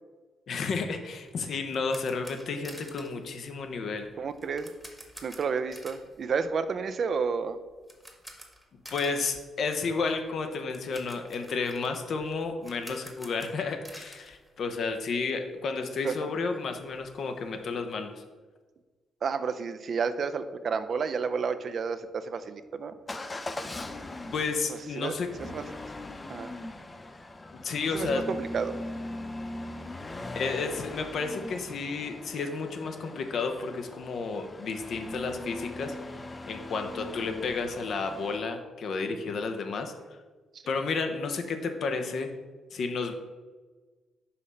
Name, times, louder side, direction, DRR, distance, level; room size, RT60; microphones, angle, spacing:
voice 1, 0.5-4.1 8.9-18.2 24.3-25.3 27.6-28.2 30.4-36.2 36.5-39.9 40.7-42.3 42.7-43.1, left 4 dB, 65° left, 7 dB, 0.7 m, -32 dB
sound 1, 1.3-15.2 15.5-15.6 16.0-16.1 16.4-17.9, equal, ahead, 1.0 m, -50 dB
voice 2, 4.2-4.7 5.2-7.6 16.0-16.1 19.2-22.9 25.0-25.1 25.5-25.6 26.3-26.5 27.9-28.9, right 5 dB, 55° right, 10 dB, 0.4 m, -31 dB
Motor vehicle (road) / Engine starting / Accelerating revving vroom, 23.1-38.4, left 2 dB, 25° left, 0.4 m, -40 dB
5.6 x 3.2 x 5.3 m, 1.3 s
cardioid pair, 80°, 0 cm